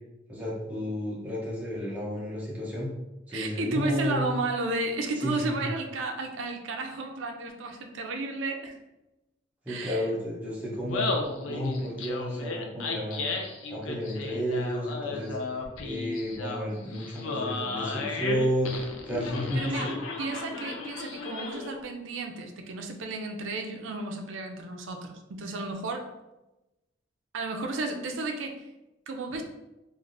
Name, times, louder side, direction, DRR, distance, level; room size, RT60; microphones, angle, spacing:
voice 1, 0.3-2.9 3.3-4.3 5.2-5.6 9.7-11.1 11.5-13.3 13.7-15.4 15.8-19.9, equal, 10° right, -7 dB, 0.6 m, -31 dB
voice 2, 3.3-8.8 9.7-10.1 19.5-19.9 20.2-26.1 27.3-28.7 29.1-29.4, right 2 dB, 75° right, 4 dB, 0.4 m, -33 dB
Laughter, 10.7-21.8, left 3 dB, 85° left, 0.4 m, -34 dB
3.3 x 2.5 x 2.5 m, 0.99 s
head